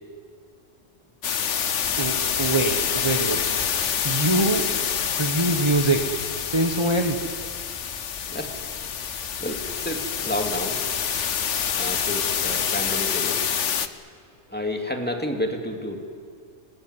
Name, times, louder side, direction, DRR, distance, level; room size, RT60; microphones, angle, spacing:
sound 1, 1.2-13.9, left 8 dB, 75° left, 1.3 m, -27 dB
sound 2, 1.8-12.9, left 1 dB, 25° left, 4.9 m, -46 dB
voice 1, 2.0-3.4 4.0-4.7 5.2-7.2, right 2 dB, 25° right, 5 dB, 1.2 m, -24 dB
voice 2, 8.3-8.6 9.0-10.8 11.7-13.4 14.5-16.3, left 1 dB, 10° left, 3 dB, 2.5 m, -31 dB
25.0 x 20.5 x 9.8 m, 2.2 s
omnidirectional pair, 1.3 m